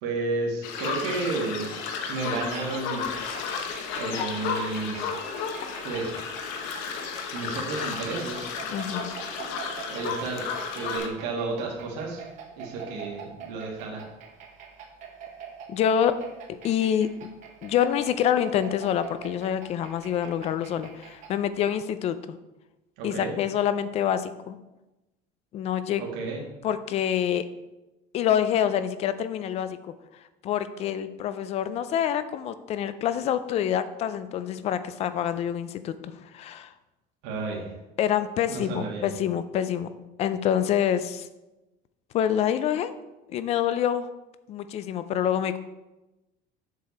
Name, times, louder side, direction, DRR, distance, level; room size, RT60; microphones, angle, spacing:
voice 1, 0.0-1.7 2.1-3.1 4.0-5.1 5.8-6.1 7.3-8.5 9.9-10.4 10.7-12.2 12.6-14.0 23.0-23.3 26.0-26.4 37.2-37.7 38.5-39.0, right 3 dB, 80° right, -1 dB, 1.9 m, -32 dB
sound 1, 0.6-11.1, left 5 dB, 85° left, 1.2 m, -33 dB
sound 2, 1.7-11.0, left 6 dB, 60° left, 1.0 m, -46 dB
sound 3, 2.1-21.4, right 7 dB, 40° right, 1.3 m, -45 dB
voice 2, 8.7-9.1 15.7-16.2 16.5-17.1 17.6-22.2 23.0-24.6 25.5-26.0 26.6-27.5 28.1-29.9 30.4-36.7 38.0-39.9 40.2-41.3 42.1-42.9 43.3-44.1 44.5-45.6, left 9 dB, 35° left, 13 dB, 0.4 m, -26 dB
7.4 x 6.8 x 4.2 m, 1.0 s
cardioid pair, 175°, 18 cm